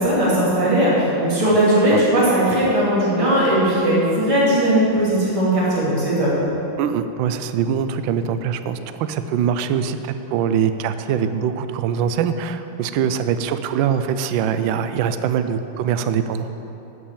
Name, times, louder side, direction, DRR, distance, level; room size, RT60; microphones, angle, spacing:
voice 1, 0.0-6.3, right 1 dB, 15° right, -8 dB, 2.7 m, -18 dB
voice 2, 6.8-16.5, right 8 dB, 75° right, 10 dB, 1.2 m, -23 dB
12.5 x 6.1 x 7.4 m, 3.0 s
omnidirectional pair, 2.4 m